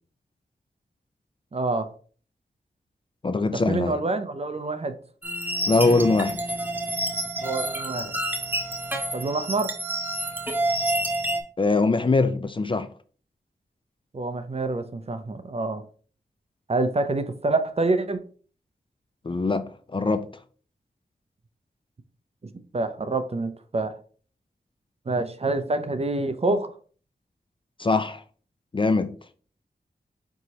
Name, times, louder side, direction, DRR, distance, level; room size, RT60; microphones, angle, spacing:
voice 1, 1.5-1.9 3.5-5.0 7.4-8.2 9.1-9.7 14.1-15.8 16.7-18.2 22.7-23.9 25.1-26.7, right 2 dB, 40° right, 0.5 m, -27 dB
voice 2, 3.2-4.0 5.7-6.4 11.6-12.9 19.2-19.6 19.9-20.3 27.8-28.2 28.7-29.1, left 3 dB, 30° left, 0.4 m, -22 dB
sound 1, 5.2-11.4, right 1 dB, 10° right, 0.8 m, -28 dB
4.6 x 3.9 x 2.8 m
wide cardioid pair, 70°, 17 cm